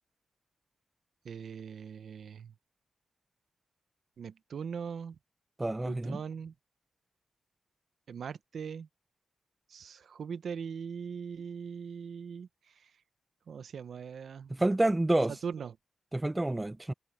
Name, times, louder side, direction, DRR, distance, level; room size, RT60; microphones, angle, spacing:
voice 1, 1.2-2.5 4.2-5.2 5.8-6.5 8.1-8.9 9.7-12.9 13.5-14.5 15.3-15.8, right 6 dB, 65° right, 0.8 m, -40 dB
voice 2, 5.6-6.2 14.5-15.3 16.1-16.9, right 1 dB, 15° right, 0.6 m, -28 dB
wide cardioid pair, 130°, 0 cm